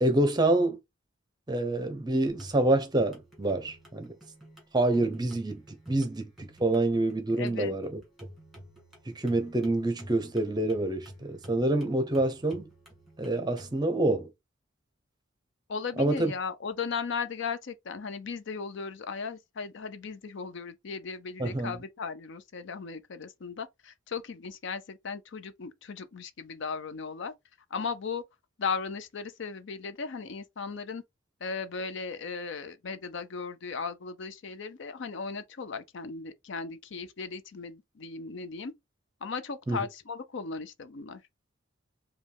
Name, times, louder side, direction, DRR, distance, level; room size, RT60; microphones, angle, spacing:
voice 1, 0.0-0.8 1.5-4.1 4.7-8.0 9.1-12.7 13.2-14.3 16.0-16.3 21.4-21.8 39.7-39.8, right 2 dB, 20° right, 0.7 m, -27 dB
sound 1, 2.3-13.8, equal, ahead, 2.0 m, -51 dB
voice 2, 7.4-7.7 15.7-27.3 27.7-28.2 28.6-31.0 31.4-38.7 39.2-41.2, left 5 dB, 60° left, 0.5 m, -36 dB
5.1 x 2.3 x 3.4 m
head